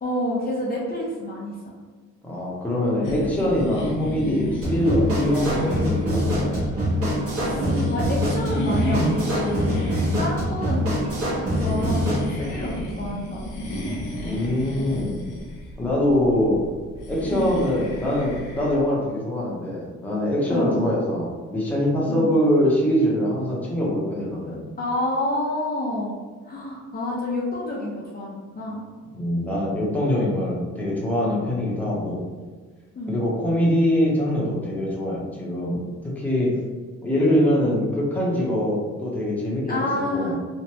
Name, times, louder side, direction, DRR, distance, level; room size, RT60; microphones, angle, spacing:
voice 1, 0.0-1.7 7.4-13.6 17.3-17.6 20.5-20.9 22.1-22.4 24.8-26.2 26.5-28.8 33.0-33.2 39.7-40.3, left 1 dB, 30° left, -6 dB, 0.7 m, -29 dB
voice 2, 2.2-6.6 10.0-10.4 14.2-15.1 15.8-16.7 17.1-24.6 29.1-32.2 33.1-36.6 37.0-39.9 40.1-40.3, left 1 dB, 5° left, -5 dB, 0.9 m, -23 dB
sound 1, 3.0-18.8, equal, 90° left, 0.8 m, -31 dB
sound 2, 4.6-12.3, equal, 50° right, 1.2 m, -24 dB
3.1 x 2.5 x 2.9 m, 1.4 s
cardioid pair, 105°, 30 cm